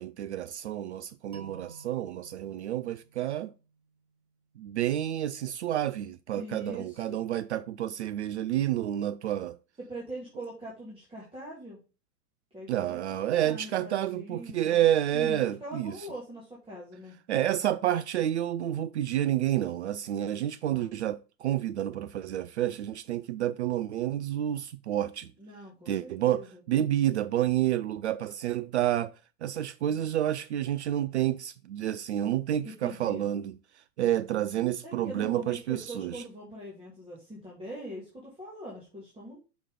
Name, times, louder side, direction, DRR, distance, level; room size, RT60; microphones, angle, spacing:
voice 1, 0.0-3.5 4.6-9.6 12.7-16.0 17.3-25.3 25.9-29.1 29.4-33.5 34.0-36.2, right 12 dB, 45° right, 0.4 m, -29 dB
sound 1, 1.3-4.2, right 4 dB, 70° right, 1.3 m, -52 dB
voice 2, 6.3-7.2 9.8-11.8 12.5-14.8 15.1-17.2 20.7-20.9 25.4-26.6 32.6-33.2 34.8-39.4, equal, 10° right, 2.7 m, -42 dB
6.2 x 6.0 x 3.6 m
figure-of-eight pair, 95°, 48 cm